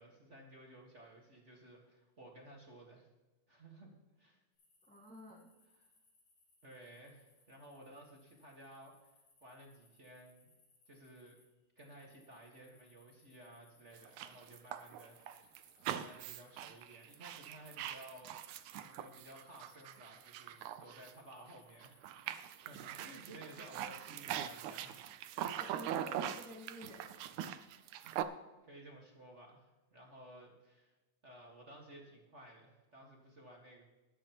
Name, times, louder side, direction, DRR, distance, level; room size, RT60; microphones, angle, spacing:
voice 1, 0.0-3.1 3.5-4.4 6.6-9.2 9.4-10.5 10.8-11.4 11.7-15.6 15.9-18.3 18.8-22.0 22.6-24.9 28.0-30.9 31.2-33.8, right 1 dB, 35° right, -1 dB, 1.3 m, -56 dB
sound 1, 4.5-11.5 11.8-17.5 17.8-23.1, left 3 dB, 80° left, 5.0 m, -69 dB
voice 2, 4.9-5.5 23.6-23.9 25.5-27.1, equal, 10° left, -1 dB, 0.5 m, -52 dB
sound 2, 14.0-21.5 21.8-28.2, right 10 dB, 80° right, 2.0 m, -42 dB
20.5 x 9.2 x 3.0 m, 1.1 s
omnidirectional pair, 3.6 m